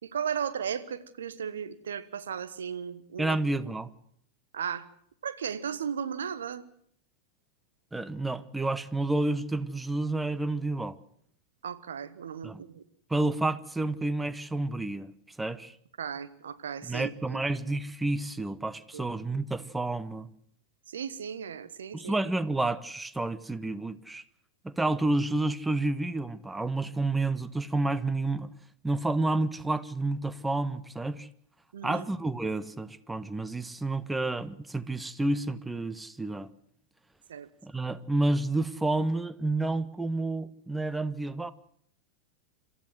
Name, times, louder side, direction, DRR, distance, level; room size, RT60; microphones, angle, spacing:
voice 1, 0.0-3.4 4.5-4.9 5.2-6.7 11.6-12.8 16.0-17.4 18.9-19.1 20.9-22.1 31.7-32.0 37.3-37.5, right 7 dB, 65° right, 1.4 m, -35 dB
voice 2, 3.2-3.9 7.9-11.0 12.4-12.6 13.1-15.1 15.4-15.7 16.8-20.3 21.9-24.2 24.6-28.5 28.8-31.3 31.8-36.5 37.6-41.5, right 2 dB, 5° right, 1.0 m, -30 dB
26.5 x 14.0 x 7.8 m
figure-of-eight pair, 90°, 0 cm